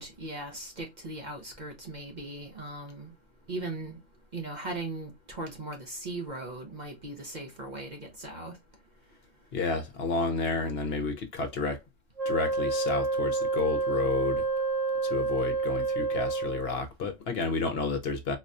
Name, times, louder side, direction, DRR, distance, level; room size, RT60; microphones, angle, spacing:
voice 1, 0.0-3.1 3.5-4.0 4.3-8.5, right 2 dB, 45° right, 0.7 m, -38 dB
voice 2, 9.5-11.8 12.3-14.4 15.0-18.4, left 4 dB, 60° left, 0.9 m, -31 dB
Wind instrument woodwind instrument, 12.2-16.8, right 4 dB, 90° right, 1.3 m, -29 dB
4.0 x 2.2 x 2.5 m
omnidirectional pair, 1.3 m